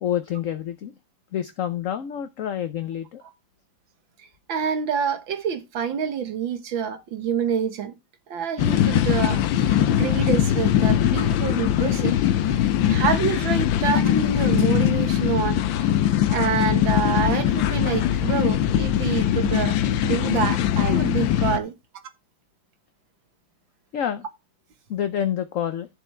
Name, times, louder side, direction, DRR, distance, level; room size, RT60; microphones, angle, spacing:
voice 1, 0.0-0.9 1.3-3.2 23.9-24.3 24.9-25.9, left 10 dB, 60° left, 0.9 m, -28 dB
voice 2, 4.5-7.9 8.3-12.1 12.9-15.6 16.3-21.7, right 7 dB, 85° right, 2.1 m, -27 dB
sound 1, 8.6-21.6, left 11 dB, 90° left, 1.5 m, -21 dB
12.0 x 7.0 x 3.3 m
omnidirectional pair, 2.1 m